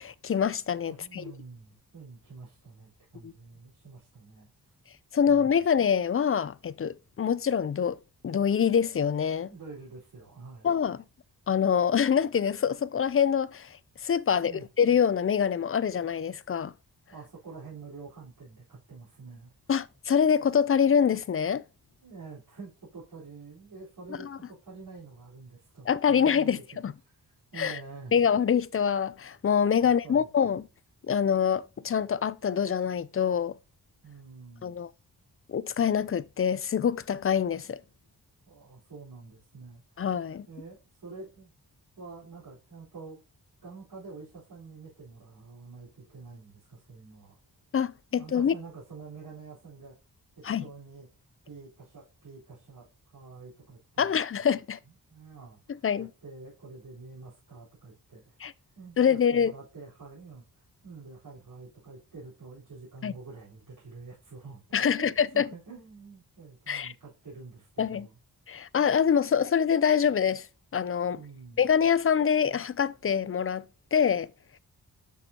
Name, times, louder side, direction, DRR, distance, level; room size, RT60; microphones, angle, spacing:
voice 1, 0.0-1.2 3.2-3.3 5.1-8.0 8.2-9.5 10.6-11.0 11.5-13.8 14.0-14.5 14.8-16.7 19.7-21.6 25.9-26.9 27.6-27.8 28.1-30.6 31.1-33.5 34.6-34.9 35.5-37.8 40.0-40.5 47.7-48.5 50.4-50.6 54.0-54.8 55.7-56.1 58.4-58.5 59.0-59.5 63.0-63.1 64.7-65.5 66.7-66.9 67.8-68.1 68.5-70.5 70.7-71.2 71.6-73.7 73.9-74.3, left 7 dB, 35° left, 0.4 m, -25 dB
voice 2, 0.9-4.5 5.3-5.5 9.5-10.7 14.4-14.7 17.1-19.5 22.0-27.2 27.5-28.2 29.8-30.3 34.0-34.8 38.5-39.8 40.5-41.5 42.0-43.2 43.6-47.4 48.1-50.0 50.4-51.1 51.4-54.1 55.1-68.2 71.1-71.7, right 4 dB, 75° right, 4.1 m, -47 dB
9.1 x 6.1 x 2.8 m
cardioid pair, 80°, 39 cm